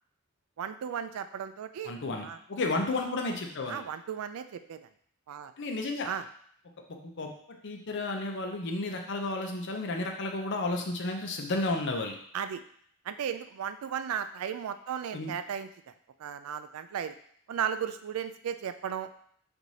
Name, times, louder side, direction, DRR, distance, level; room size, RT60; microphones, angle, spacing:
voice 1, 0.6-1.9 2.2-2.4 3.7-4.8 5.3-5.5 6.0-6.3 12.3-12.6 13.0-15.7 16.2-17.1 17.5-19.1, right 8 dB, 80° right, 10 dB, 0.3 m, -35 dB
voice 2, 1.8-3.8 5.6-6.1 6.9-7.3 7.6-12.1 15.1-15.3, left 2 dB, 55° left, 2 dB, 0.7 m, -32 dB
4.7 x 2.6 x 4.0 m, 0.65 s
head